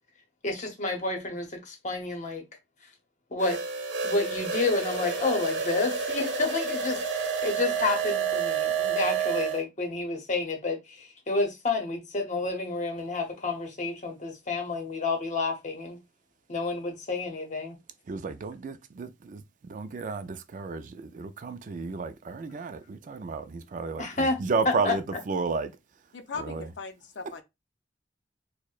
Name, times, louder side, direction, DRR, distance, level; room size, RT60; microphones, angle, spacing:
voice 1, 0.4-2.4 3.3-3.6 4.0-16.0 16.5-17.8 24.0-24.4 24.8-24.9, left 3 dB, 45° left, 0.8 m, -30 dB
sound 1, 3.4-9.6, right 6 dB, 80° right, 0.8 m, -29 dB
voice 2, 18.1-25.8 26.3-26.7, right 4 dB, 45° right, 0.3 m, -33 dB
voice 3, 26.1-27.4, left 4 dB, 75° left, 0.5 m, -38 dB
4.5 x 2.1 x 2.4 m
head